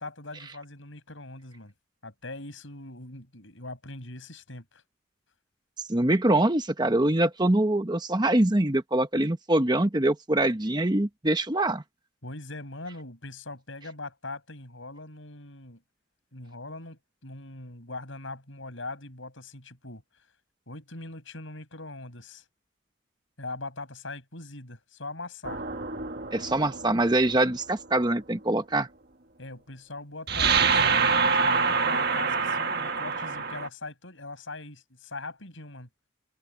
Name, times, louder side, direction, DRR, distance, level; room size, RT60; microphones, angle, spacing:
voice 1, 0.0-1.7 2.0-4.8 12.2-15.8 16.3-20.0 20.7-22.5 23.4-25.6 29.4-35.9, left 2 dB, 65° left, 7.1 m, -41 dB
voice 2, 5.9-11.8 26.3-28.9, right 1 dB, 20° right, 1.0 m, -24 dB
sound 1, 25.4-27.3 30.3-33.7, right 5 dB, 50° right, 1.7 m, -26 dB
open air
head